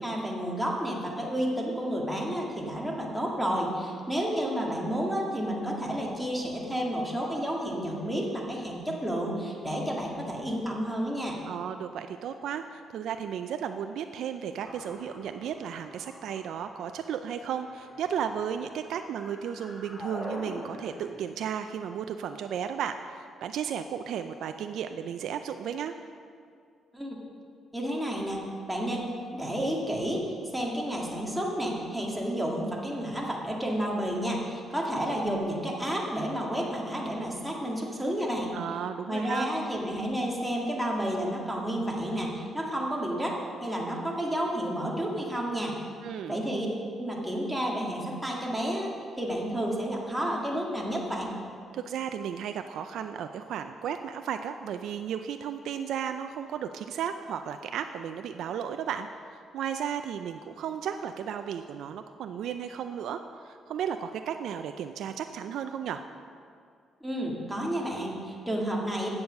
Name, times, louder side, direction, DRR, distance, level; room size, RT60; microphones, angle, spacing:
voice 1, 0.0-11.4 26.9-27.2 27.7-30.2 30.5-38.6 39.1-45.8 46.3-46.7 47.0-48.9 49.2-51.3 67.0-69.1, equal, 5° right, -2 dB, 1.9 m, -31 dB
voice 2, 11.5-25.9 38.5-39.5 46.0-46.4 51.7-66.0, right 8 dB, 75° right, 8 dB, 0.3 m, -34 dB
sound 1, 14.6-21.2, left 1 dB, 25° left, 1.8 m, -44 dB
8.3 x 7.0 x 6.4 m, 2.3 s
cardioid pair, 90°, 0 cm